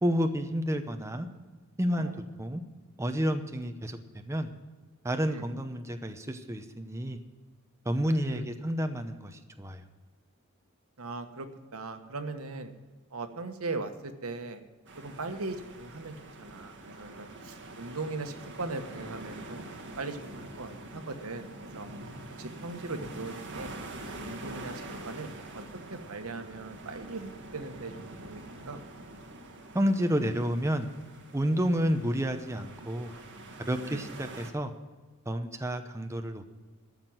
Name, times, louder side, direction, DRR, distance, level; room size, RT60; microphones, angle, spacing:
voice 1, 0.0-1.3 1.8-2.1 2.4-2.6 3.0-4.5 5.0-7.2 7.9-9.8 29.7-30.9 31.3-33.1 33.7-34.7 35.3-36.5, equal, 15° right, 6 dB, 0.8 m, -30 dB
voice 2, 7.9-8.5 11.0-12.7 13.1-14.6 15.0-21.9 22.3-23.7 24.2-25.6 25.9-27.9 28.2-28.8 33.8-34.0, right 3 dB, 85° right, 7 dB, 1.3 m, -39 dB
sound 1, 14.9-34.5, right 2 dB, 60° right, 1.8 m, -45 dB
13.5 x 6.0 x 9.3 m, 1.3 s
head